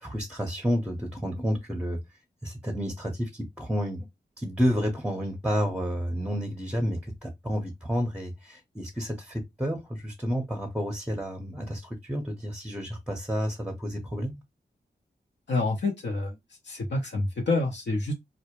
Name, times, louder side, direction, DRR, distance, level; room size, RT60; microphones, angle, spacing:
voice 1, 0.0-2.0 2.4-4.1 4.4-14.3, equal, 5° right, 0.6 m, -30 dB
voice 2, 15.5-16.4 16.6-18.1, left 2 dB, 80° left, 0.6 m, -27 dB
2.1 x 2.1 x 2.8 m
cardioid pair, 50°, 18 cm